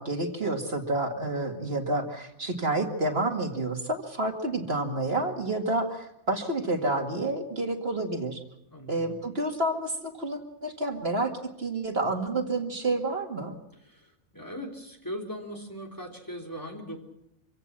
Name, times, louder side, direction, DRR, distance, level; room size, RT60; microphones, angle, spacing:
voice 1, 0.0-8.4 8.9-11.3 11.6-13.5, right 2 dB, 45° right, 4 dB, 2.3 m, -29 dB
voice 2, 8.7-9.2 13.8-17.0, equal, 15° left, 2 dB, 3.6 m, -39 dB
25.5 x 16.5 x 7.4 m, 0.80 s
omnidirectional pair, 1.4 m